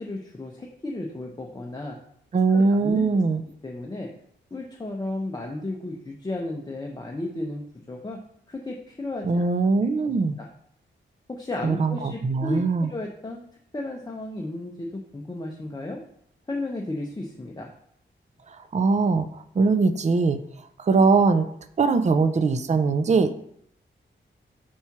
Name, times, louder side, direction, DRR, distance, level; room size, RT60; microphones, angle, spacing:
voice 1, 0.0-2.0 2.5-3.2 3.6-4.1 4.5-8.2 8.5-9.5 10.0-10.5 11.3-13.4 13.7-16.0 16.5-17.7, left 2 dB, 20° left, 0 dB, 0.7 m, -34 dB
voice 2, 2.3-3.4 9.2-10.4 11.6-12.9 18.5-20.4 20.8-21.5 21.8-23.4, right 4 dB, 35° right, 11 dB, 0.4 m, -21 dB
4.6 x 4.3 x 5.8 m, 0.68 s
wide cardioid pair, 110°, 20 cm